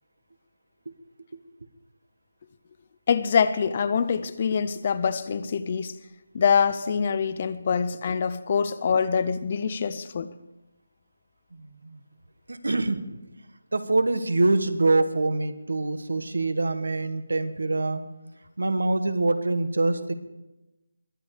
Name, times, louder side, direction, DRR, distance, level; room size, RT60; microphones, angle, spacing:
voice 1, 3.1-5.9 6.3-10.3, left 6 dB, 25° left, 0.5 m, -24 dB
voice 2, 11.5-12.0 12.5-13.0 13.7-18.0 18.6-20.1, right 2 dB, 80° right, 1.6 m, -25 dB
22.5 x 9.2 x 5.0 m
figure-of-eight pair, 175°, 0 cm